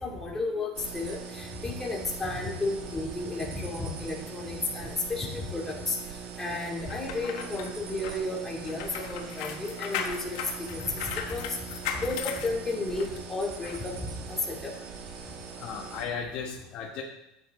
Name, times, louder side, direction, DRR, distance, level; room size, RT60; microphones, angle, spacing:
voice 1, 0.0-6.0 6.4-10.4 10.7-11.5 12.0-14.7, left 2 dB, 15° left, -2 dB, 2.5 m, -33 dB
sound 1, 0.7-16.0, right 6 dB, 60° right, 1.9 m, -42 dB
sound 2, 6.9-13.2 13.6-13.8, left 8 dB, 80° left, 1.4 m, -37 dB
voice 2, 15.6-17.0, left 6 dB, 50° left, -1 dB, 1.4 m, -35 dB
11.5 x 8.4 x 3.7 m, 0.87 s
supercardioid pair, 125°, 3 cm